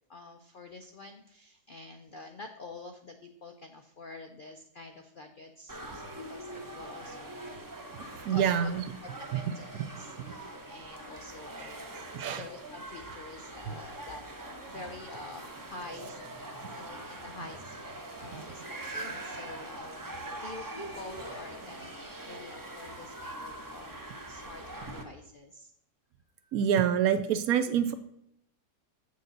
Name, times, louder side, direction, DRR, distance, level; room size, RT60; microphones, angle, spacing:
voice 1, 0.1-7.3 8.3-8.7 9.2-12.1 12.3-24.0 24.2-25.7 26.4-26.5, left 3 dB, 80° left, 5 dB, 0.4 m, -48 dB
sound 1, 5.7-25.0, right 1 dB, 20° right, 0.5 m, -43 dB
voice 2, 8.1-8.8 9.3-9.4 10.3-10.4 11.6-12.4 13.7-13.8 18.3-18.4 26.5-27.9, right 9 dB, 70° right, 11 dB, 1.0 m, -28 dB
7.6 x 6.7 x 3.9 m, 0.79 s
omnidirectional pair, 1.8 m